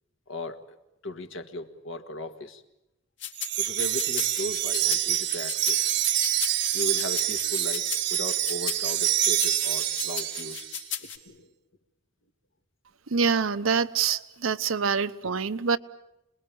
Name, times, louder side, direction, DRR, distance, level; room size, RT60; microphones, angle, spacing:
voice 1, 0.3-0.6 1.0-2.6 3.6-5.9 6.7-10.7 11.0-11.5, left 1 dB, 75° left, 1.8 m, -37 dB
sound 1, 3.2-11.2, left 10 dB, 60° left, 2.2 m, -36 dB
Wind chime, 3.3-10.8, right 12 dB, 55° right, 0.9 m, -26 dB
voice 2, 13.1-15.8, right 5 dB, 90° right, 0.9 m, -25 dB
27.0 x 20.5 x 8.6 m
head